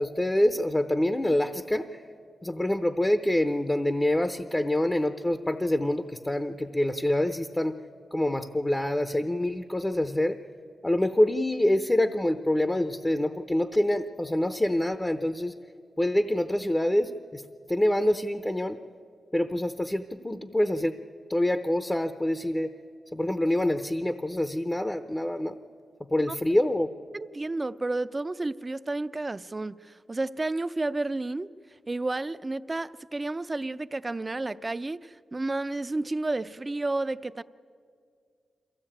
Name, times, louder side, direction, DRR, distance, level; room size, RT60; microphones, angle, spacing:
voice 1, 0.0-2.0 2.4-7.8 8.1-10.4 10.8-15.6 16.0-17.4 17.7-18.8 19.3-21.0 21.3-22.7 23.1-25.5 26.1-26.9, left 1 dB, 15° left, 9 dB, 0.7 m, -26 dB
voice 2, 27.1-31.5 31.9-37.4, right 2 dB, 30° right, 14 dB, 0.5 m, -31 dB
22.5 x 15.5 x 8.7 m, 2.2 s
cardioid pair, 75°, 0 cm